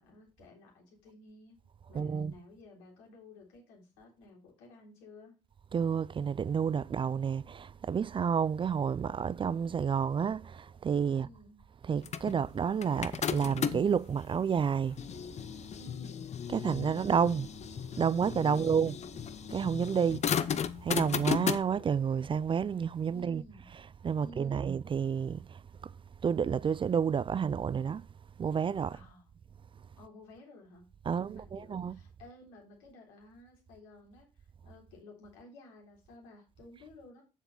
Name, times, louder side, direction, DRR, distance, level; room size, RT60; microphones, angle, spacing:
voice 1, 0.0-1.6 1.9-5.4 11.1-11.6 15.8-16.3 18.5-18.9 23.1-23.7 24.2-24.7 28.9-29.3 30.0-30.8 31.1-37.2, left 1 dB, 80° left, 3.4 m, -54 dB
voice 2, 1.9-2.3 5.7-11.3 11.8-15.0 16.5-17.5 18.0-19.0 19.5-20.3 20.8-23.4 23.7-25.6 26.2-28.0 28.4-29.0 31.0-32.0, right 7 dB, 35° right, 0.4 m, -30 dB
sound 1, 12.1-14.0 14.6-21.6, left 7 dB, 45° left, 0.7 m, -35 dB
7.2 x 7.0 x 3.9 m
hypercardioid pair, 50°, 16 cm